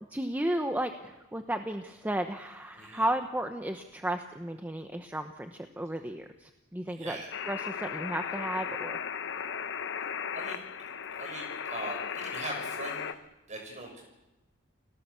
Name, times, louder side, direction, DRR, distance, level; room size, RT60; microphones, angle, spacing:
voice 1, 0.1-7.2 7.5-9.0, right 1 dB, 10° right, 6 dB, 0.9 m, -33 dB
voice 2, 2.7-3.0 7.0-7.3 10.3-10.6 11.1-13.1 13.5-14.0, right 2 dB, 35° right, 2 dB, 6.5 m, -40 dB
sound 1, 7.3-13.1, left 7 dB, 55° left, 1.0 m, -36 dB
30.0 x 18.0 x 7.0 m, 1.0 s
head